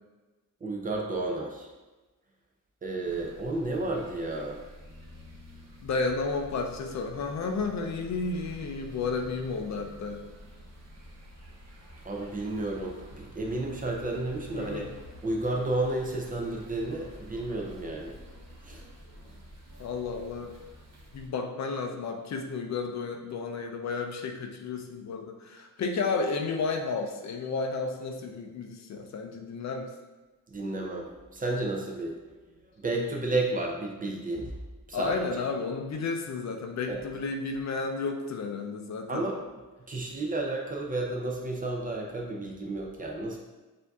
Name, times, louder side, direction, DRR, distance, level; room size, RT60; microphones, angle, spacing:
voice 1, 0.6-1.7 2.8-4.6 12.0-14.9 15.2-18.2 18.6-18.8 30.5-32.2 32.8-34.5 34.9-35.2 36.9-37.0 39.1-39.4 39.9-43.4, right 2 dB, 25° right, 0 dB, 0.5 m, -32 dB
sound 1, 3.0-21.3, equal, 50° right, 0.9 m, -49 dB
voice 2, 5.8-10.2 14.5-14.9 19.8-20.5 21.1-29.9 34.9-39.2, left 4 dB, 50° left, 4 dB, 0.4 m, -32 dB
7.0 x 2.6 x 2.3 m, 1.2 s
wide cardioid pair, 160°, 35 cm